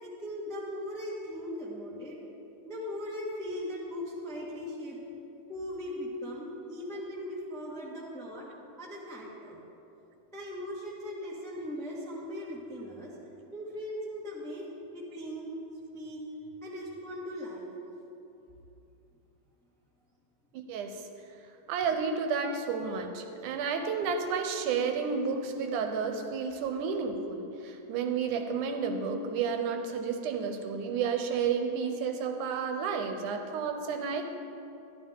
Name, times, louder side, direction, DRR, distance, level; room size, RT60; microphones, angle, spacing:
voice 1, 0.0-2.2 2.6-5.0 5.5-8.4 8.8-9.6 10.3-13.1 13.5-14.7 14.9-15.5 15.9-16.2 16.6-17.7, left 1 dB, 5° left, -5 dB, 0.4 m, -39 dB
voice 2, 20.5-21.0 21.7-34.2, right 5 dB, 80° right, 5 dB, 2.2 m, -31 dB
12.5 x 11.5 x 3.6 m, 2.9 s
omnidirectional pair, 3.7 m